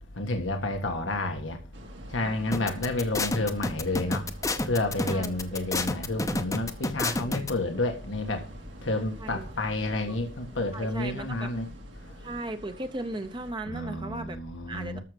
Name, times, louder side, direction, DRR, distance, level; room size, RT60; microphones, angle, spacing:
voice 1, 0.2-1.6 2.1-4.2 4.6-8.4 8.8-11.7 13.7-15.0, left 2 dB, 90° left, 1.5 m, -30 dB
sound 1, 1.7-13.5, right 1 dB, 75° right, 2.4 m, -48 dB
voice 2, 2.3-2.8 5.0-5.7 6.3-6.4 9.2-9.5 10.1-10.2 10.7-11.5 12.2-14.4 14.7-15.0, right 2 dB, 25° right, 0.7 m, -37 dB
sound 2, 2.5-7.5, left 2 dB, 15° left, 0.7 m, -29 dB
13.5 x 6.3 x 5.1 m
head